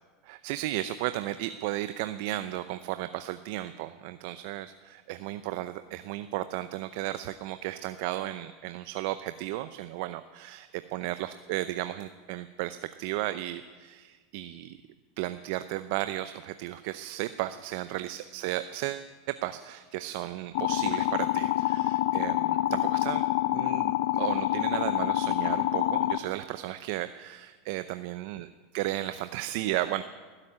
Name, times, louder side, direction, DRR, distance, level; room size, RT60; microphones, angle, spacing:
voice 1, 0.2-14.8 15.2-23.2 23.5-28.5 28.7-30.0, right 15 dB, 65° right, 12 dB, 0.6 m, -34 dB
sound 1, 20.5-26.2, left 15 dB, 70° left, 0.7 m, -27 dB
17.5 x 8.4 x 9.8 m, 1.4 s
hypercardioid pair, 105°, 0 cm